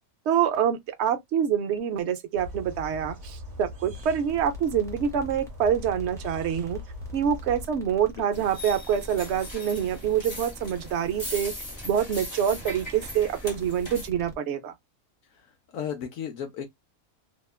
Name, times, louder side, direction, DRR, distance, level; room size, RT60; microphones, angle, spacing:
voice 1, 0.3-6.8 7.1-11.5 11.8-14.7, right 8 dB, 65° right, 0.7 m, -26 dB
sound 1, 2.3-7.7, left 2 dB, 35° right, 1.0 m, -40 dB
sound 2, 3.9-14.4, equal, 5° left, 0.5 m, -46 dB
voice 2, 8.1-8.4 15.2-16.7, left 8 dB, 70° left, 1.0 m, -36 dB
sound 3, 8.3-14.1, left 1 dB, 20° left, 0.9 m, -39 dB
2.9 x 2.2 x 2.2 m
omnidirectional pair, 1.6 m